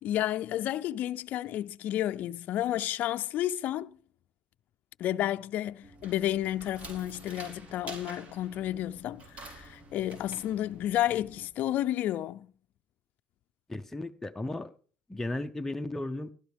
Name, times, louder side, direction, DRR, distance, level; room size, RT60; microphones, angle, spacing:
voice 1, 0.0-4.0 5.0-12.5, left 13 dB, 60° left, 0.5 m, -31 dB
sound 1, 5.8-11.5, right 2 dB, 45° right, 4.3 m, -48 dB
voice 2, 13.7-14.7 15.1-16.3, left 1 dB, 10° left, 0.8 m, -35 dB
15.5 x 12.0 x 3.5 m
supercardioid pair, 85°, 3 cm